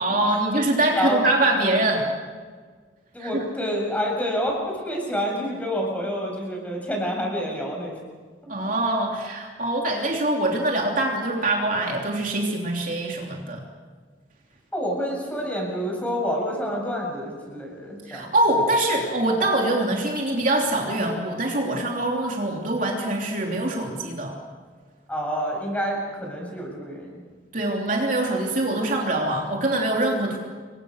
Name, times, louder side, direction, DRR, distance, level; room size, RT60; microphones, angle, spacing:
voice 1, 0.0-2.1 3.2-3.4 8.5-13.6 18.1-24.3 27.5-30.4, right 1 dB, 45° right, 0 dB, 3.2 m, -24 dB
voice 2, 3.1-8.0 8.4-8.5 14.7-18.3 25.1-27.2, equal, 5° left, 0 dB, 7.3 m, -28 dB
28.5 x 23.5 x 6.6 m, 1.5 s
head